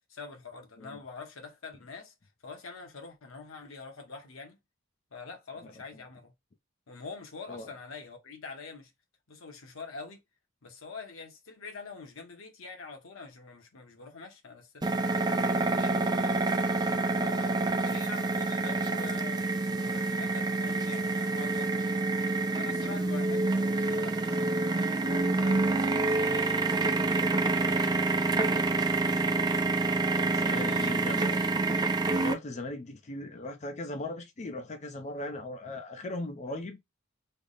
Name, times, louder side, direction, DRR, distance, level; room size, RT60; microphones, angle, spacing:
voice 1, 0.1-2.1 2.4-4.6 5.1-6.3 6.9-8.9 9.3-10.2 10.6-16.4 17.2-19.5 19.7-22.0 22.5-25.7 26.1-27.0 27.5-29.6 30.0-31.4, left 4 dB, 85° left, 0.9 m, -45 dB
sound 1, 14.8-32.3, right 3 dB, 20° right, 0.4 m, -27 dB
voice 2, 30.3-31.4 32.1-36.8, left 2 dB, 35° left, 0.5 m, -38 dB
3.4 x 2.0 x 3.8 m
head